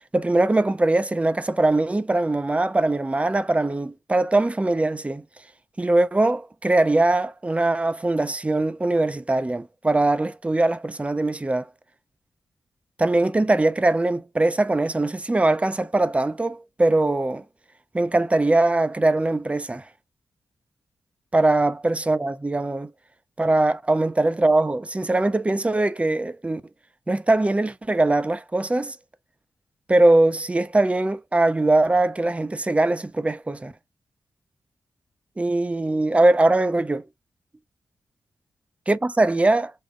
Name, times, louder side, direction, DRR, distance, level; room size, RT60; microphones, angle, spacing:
voice 1, 0.1-5.2 5.8-11.7 13.0-17.4 17.9-19.8 21.3-22.9 23.4-26.6 27.1-29.0 29.9-33.7 35.4-37.0 38.9-39.7, right 2 dB, 15° right, 0.5 m, -21 dB
3.6 x 2.2 x 3.7 m
cardioid pair, 70°, 7 cm